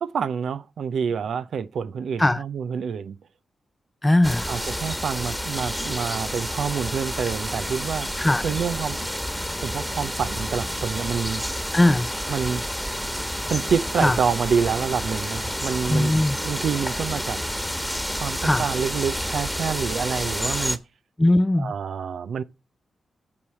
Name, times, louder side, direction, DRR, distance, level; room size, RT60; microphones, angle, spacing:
voice 1, 0.0-3.2 4.5-8.1 8.4-9.0 9.6-11.5 12.3-12.6 13.5-16.1 16.4-17.4 18.2-20.8 21.6-22.4, right 6 dB, 75° right, 0.6 m, -27 dB
voice 2, 4.0-4.5 8.2-8.4 11.7-12.1 14.0-14.2 15.9-16.4 18.4-18.6 21.2-21.7, left 1 dB, 20° left, 0.6 m, -19 dB
sound 1, 4.2-20.8, equal, ahead, 1.3 m, -29 dB
8.7 x 4.7 x 7.6 m
supercardioid pair, 40°, 0 cm